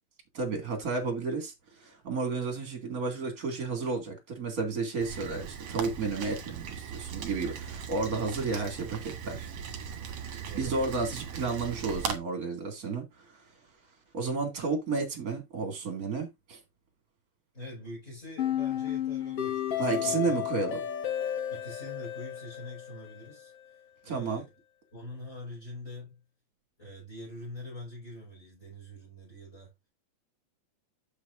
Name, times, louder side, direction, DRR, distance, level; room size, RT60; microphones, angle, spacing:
voice 1, 0.3-1.5 1.8-9.5 10.3-13.3 14.1-16.6 19.8-20.8 24.1-24.4, right 4 dB, 25° right, 2.3 m, -32 dB
Rain, 5.0-12.2, right 7 dB, 55° right, 2.1 m, -39 dB
voice 2, 17.5-20.4 21.5-24.5 24.9-26.2 26.8-29.7, left 1 dB, 15° left, 5.7 m, -44 dB
sound 1, 18.4-23.4, left 11 dB, 65° left, 1.5 m, -33 dB
8.5 x 7.7 x 2.6 m
omnidirectional pair, 4.3 m